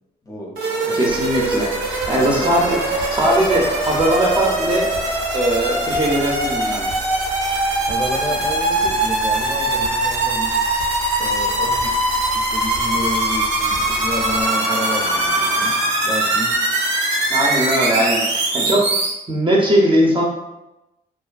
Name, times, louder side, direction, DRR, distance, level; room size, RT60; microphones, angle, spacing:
voice 1, 0.2-1.2 2.2-2.6 7.9-10.6 11.2-11.9 12.3-15.8 16.0-16.6, left 1 dB, 20° left, -2 dB, 0.6 m, -30 dB
sound 1, 0.6-19.1, right 2 dB, 90° right, 0.5 m, -21 dB
sound 2, 0.8-18.7, left 1 dB, 65° left, 0.7 m, -36 dB
voice 2, 0.9-2.8 3.1-4.9 5.3-6.9 17.3-18.9 19.3-20.2, right 1 dB, 25° right, -2 dB, 0.6 m, -19 dB
sound 3, 1.1-14.5, right 1 dB, 85° left, 0.9 m, -37 dB
2.5 x 2.2 x 2.4 m, 0.97 s
supercardioid pair, 55°, 19 cm